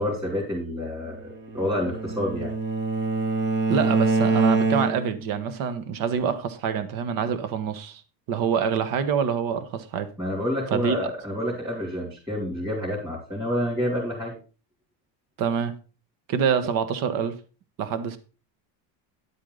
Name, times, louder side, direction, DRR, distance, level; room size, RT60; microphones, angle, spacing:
voice 1, 0.0-2.5 10.2-14.3, left 1 dB, 5° right, -5 dB, 3.2 m, -28 dB
Bowed string instrument, 1.3-5.3, right 3 dB, 25° right, 1.0 m, -25 dB
voice 2, 3.7-8.0 8.3-10.1 10.7-11.0 15.4-15.7 16.3-17.3 17.8-18.2, right 7 dB, 40° right, 11 dB, 1.4 m, -26 dB
10.5 x 8.4 x 4.0 m, 0.34 s
cardioid pair, 170°, 49 cm